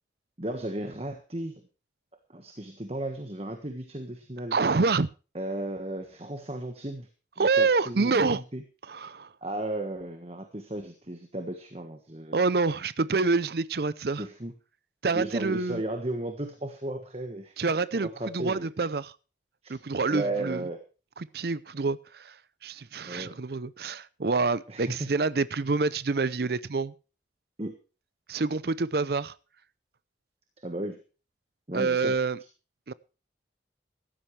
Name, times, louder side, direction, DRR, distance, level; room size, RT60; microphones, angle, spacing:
voice 1, 0.4-1.6 2.3-4.6 5.3-7.1 7.4-8.6 9.4-12.4 14.2-14.5 15.1-17.6 17.9-18.7 19.6-19.7 20.1-20.8 23.1-23.3 24.7-25.1 27.6-27.8 30.6-31.0 31.7-32.2, right 1 dB, 35° right, 1.5 m, -35 dB
voice 2, 4.5-5.1 7.4-8.4 8.9-9.3 12.3-14.2 15.0-15.8 17.6-18.1 18.3-19.1 19.7-20.6 21.2-22.4 22.6-26.9 28.3-29.3 31.7-32.4 32.9-33.0, right 4 dB, 55° right, 0.6 m, -27 dB
16.0 x 13.5 x 3.3 m
head